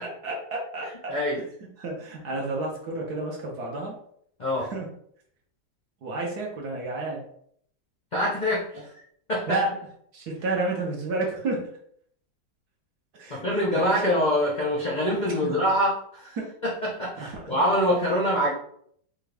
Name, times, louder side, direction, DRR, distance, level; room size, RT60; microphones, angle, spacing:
voice 1, 0.0-1.5 1.8-4.0 4.6-4.9 6.0-7.2 9.5-9.7 10.1-11.7 13.1-14.1 15.4-15.5 16.4-16.5 17.2-17.6, right 2 dB, 60° right, -1 dB, 1.3 m, -31 dB
voice 2, 1.1-1.4 4.4-4.7 8.1-8.9 9.3-9.6 13.3-16.4 16.6-18.5, equal, 45° left, -5 dB, 0.5 m, -25 dB
4.4 x 2.5 x 3.3 m, 0.66 s
omnidirectional pair, 2.0 m